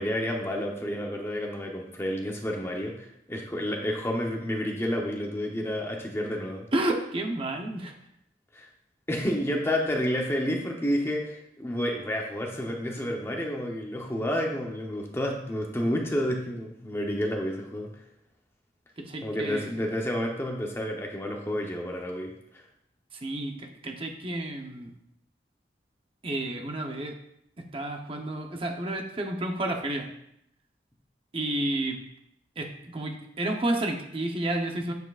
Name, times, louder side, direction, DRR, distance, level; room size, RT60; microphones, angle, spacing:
voice 1, 0.0-6.7 8.5-8.7 9.1-17.9 19.2-22.6, equal, 15° left, 1 dB, 0.8 m, -30 dB
voice 2, 6.7-7.9 19.0-19.7 23.1-24.9 26.2-27.1 27.7-30.1 31.3-32.0 32.6-34.9, right 1 dB, 30° right, 2 dB, 0.8 m, -31 dB
8.0 x 7.3 x 2.4 m, 0.77 s
head